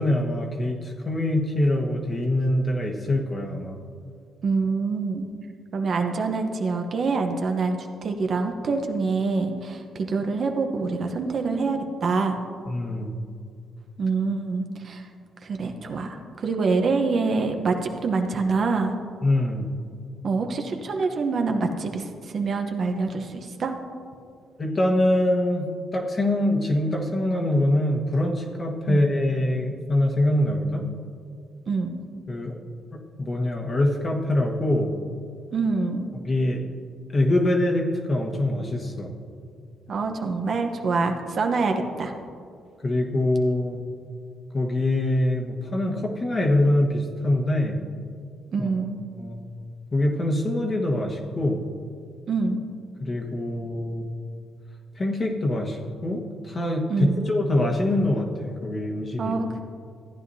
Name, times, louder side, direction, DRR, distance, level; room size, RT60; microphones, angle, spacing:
voice 1, 0.0-3.8 12.7-13.1 19.2-19.7 24.6-30.9 32.3-32.6 32.9-34.9 36.2-36.6 37.1-39.1 42.8-43.8 44.5-47.8 48.6-48.7 49.2-49.4 49.9-51.6 53.0-54.1 55.0-59.3, left 1 dB, 35° left, 1 dB, 1.3 m, -24 dB
voice 2, 4.4-5.3 5.7-12.4 14.0-15.1 15.4-19.0 20.2-23.7 28.9-29.0 31.7-32.0 35.5-36.1 39.9-42.1 48.5-49.0 52.3-52.6 56.9-57.2 59.2-59.6, right 4 dB, 50° right, 4 dB, 0.9 m, -26 dB
14.5 x 9.3 x 2.7 m, 2.3 s
cardioid pair, 90°, 0 cm